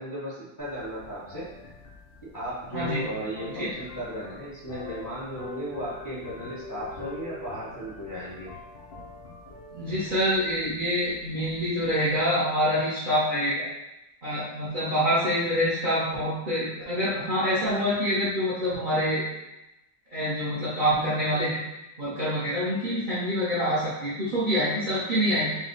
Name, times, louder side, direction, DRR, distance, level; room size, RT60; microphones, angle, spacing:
voice 1, 0.0-1.5 2.3-8.5, equal, 20° left, -10 dB, 0.5 m, -35 dB
sound 1, 0.6-12.2, left 3 dB, 75° left, 0.5 m, -45 dB
voice 2, 2.7-3.1 3.6-3.7 9.7-13.7 14.2-19.2 20.1-21.6 22.0-25.5, equal, 35° right, -11 dB, 0.8 m, -26 dB
4.2 x 2.3 x 3.9 m, 0.94 s
omnidirectional pair, 2.1 m